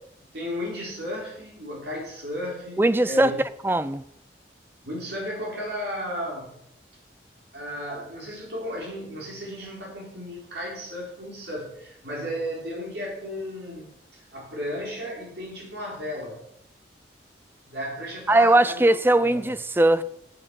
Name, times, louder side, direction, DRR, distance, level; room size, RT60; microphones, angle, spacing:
voice 1, 0.3-3.4 4.8-6.6 7.5-16.4 17.7-18.8 19.2-19.5, equal, 70° right, 4.2 m, -34 dB
voice 2, 2.8-3.3 3.6-4.0 18.3-20.0, right 1 dB, 10° right, 0.4 m, -19 dB
9.8 x 7.7 x 6.2 m
head